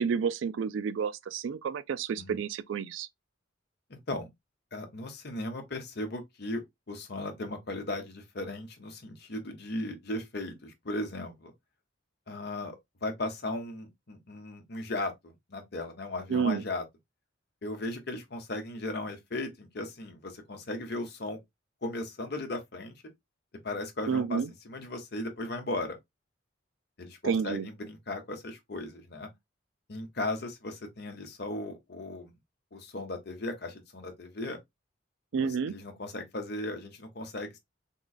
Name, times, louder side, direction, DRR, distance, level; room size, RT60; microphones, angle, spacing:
voice 1, 0.0-3.1 16.3-16.6 24.1-24.5 27.2-27.7 35.3-35.8, right 6 dB, 70° right, 0.3 m, -30 dB
voice 2, 3.9-4.3 4.7-11.5 12.3-16.8 17.6-21.4 21.8-22.9 23.6-24.4 24.6-26.0 27.0-29.3 29.9-32.3 32.7-34.6 35.7-37.6, left 2 dB, 50° left, 0.9 m, -37 dB
3.7 x 3.0 x 2.3 m
head